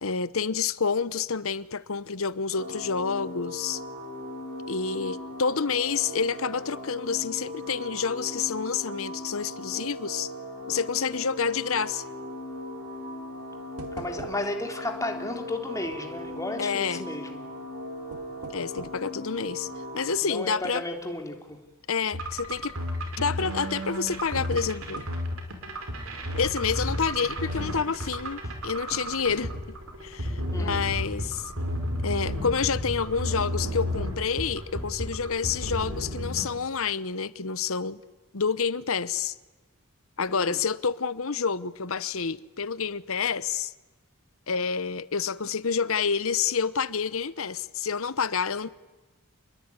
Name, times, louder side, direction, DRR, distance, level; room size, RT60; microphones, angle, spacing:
voice 1, 0.0-3.8 4.7-10.3 10.7-12.0 16.6-17.1 18.5-19.7 19.9-20.8 21.9-22.7 23.2-25.0 26.3-29.8 30.0-31.5 32.0-38.0 38.3-39.3 40.2-43.7 44.5-48.7, left 6 dB, 65° left, 1.0 m, -28 dB
sound 1, 2.5-20.2, left 1 dB, 45° right, 6.6 m, -38 dB
sound 2, 13.8-14.8 15.0-15.1 15.9-16.5 17.9-19.1 19.7-19.8 20.4-20.7 21.0-21.1 22.2-22.5 23.4-23.6 24.0-25.3 27.0-28.2 28.9-29.9 30.4-30.5 30.9-31.0, right 2 dB, 90° right, 2.3 m, -44 dB
voice 2, 13.9-17.5 20.2-21.6 30.5-30.8 40.3-40.6, left 1 dB, 15° left, 3.3 m, -34 dB
sound 3, 22.1-36.4, equal, 70° right, 5.5 m, -32 dB
28.5 x 21.5 x 9.7 m
head